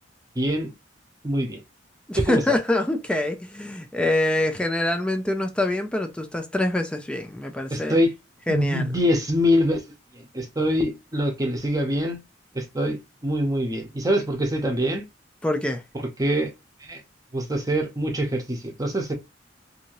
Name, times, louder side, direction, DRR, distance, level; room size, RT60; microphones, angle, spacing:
voice 1, 0.4-0.7 1.2-1.6 2.2-2.6 7.7-8.1 8.5-9.8 10.1-12.2 12.5-15.0 16.0-16.5 16.8-17.0 17.3-19.1, equal, 20° right, 0.7 m, -24 dB
voice 2, 2.1-8.0 8.5-8.9 15.4-15.8, left 1 dB, 5° left, 0.4 m, -25 dB
2.7 x 2.7 x 2.9 m
head